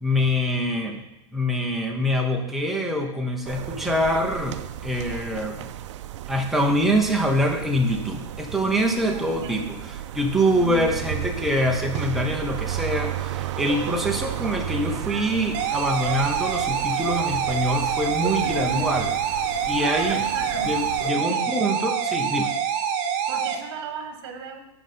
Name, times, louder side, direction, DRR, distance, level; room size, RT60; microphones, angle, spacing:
voice 1, 0.0-1.0 1.3-5.7 6.3-9.8 10.1-19.1 19.7-20.2 20.6-22.5, equal, ahead, 0 dB, 0.7 m, -25 dB
sound 1, 3.4-21.1, right 12 dB, 75° right, 0.4 m, -33 dB
voice 2, 9.0-9.7 10.5-10.9 18.4-18.9 19.7-20.7 21.1-21.4 23.3-24.6, right 6 dB, 55° right, 5 dB, 1.5 m, -35 dB
sound 2, 15.5-23.6, right 8 dB, 40° right, 0.8 m, -26 dB
9.9 x 5.0 x 4.3 m, 0.91 s
supercardioid pair, 165°, 15 cm